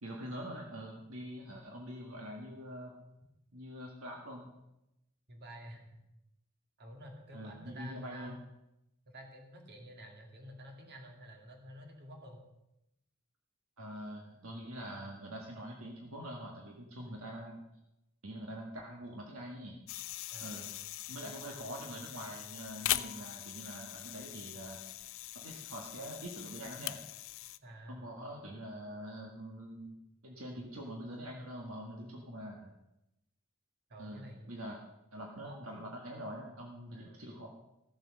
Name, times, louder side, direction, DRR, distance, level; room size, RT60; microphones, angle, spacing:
voice 1, 0.0-3.0 3.5-4.5 7.3-8.4 13.8-17.6 18.2-19.8 20.4-20.7 21.1-24.8 25.4-27.0 27.9-30.0 30.2-32.7 34.0-34.8 35.1-37.5, equal, 70° right, 0 dB, 1.8 m, -44 dB
voice 2, 5.3-6.0 6.8-8.4 9.1-12.4 17.0-17.1 20.3-20.7 21.5-21.6 27.6-28.1 33.9-34.5 35.4-35.6 36.9-37.2, equal, 50° right, 2 dB, 2.4 m, -50 dB
sound 1, 19.9-27.6, left 15 dB, 65° left, 0.5 m, -41 dB
14.5 x 7.7 x 6.4 m, 0.89 s
head